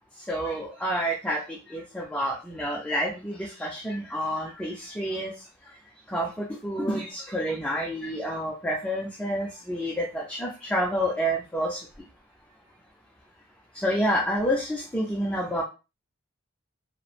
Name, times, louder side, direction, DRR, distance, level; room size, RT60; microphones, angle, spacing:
voice 1, 0.3-1.4 1.7-5.3 6.1-11.8 13.8-15.6, equal, 10° left, -3 dB, 0.4 m, -28 dB
2.9 x 2.0 x 2.4 m, 0.30 s
head